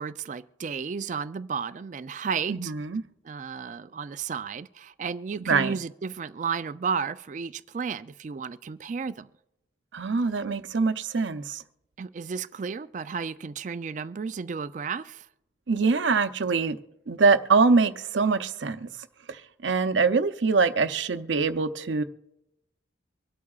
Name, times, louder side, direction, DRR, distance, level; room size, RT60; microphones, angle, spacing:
voice 1, 0.0-2.7 3.2-9.3 12.0-15.3, right 6 dB, 40° right, 0.3 m, -33 dB
voice 2, 2.5-3.0 5.5-5.7 9.9-11.6 15.7-16.8 17.1-18.9 19.3-22.0, right 4 dB, 85° right, 0.6 m, -24 dB
25.0 x 8.4 x 2.4 m
head